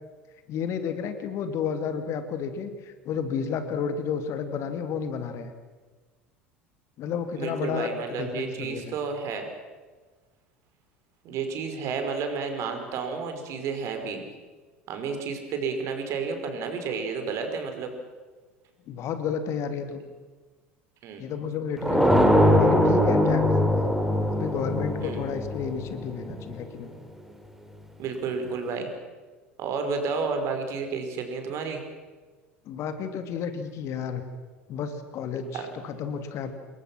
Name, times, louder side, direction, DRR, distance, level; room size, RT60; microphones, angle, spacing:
voice 1, 0.5-5.5 7.0-7.9 8.2-8.9 18.9-20.0 21.2-22.3 22.6-23.9 24.3-26.9 32.7-34.2 34.7-36.5, left 7 dB, 45° left, 8 dB, 2.6 m, -31 dB
voice 2, 7.4-9.5 11.2-14.3 14.9-17.9 21.0-21.2 25.0-25.3 26.2-26.3 28.0-28.9 29.6-31.8 35.5-35.7, right 5 dB, 45° right, 6 dB, 5.0 m, -31 dB
sound 1, 21.8-26.5, left 1 dB, 5° right, 3.9 m, -22 dB
28.0 x 22.0 x 6.3 m, 1.3 s
figure-of-eight pair, 70°, 7 cm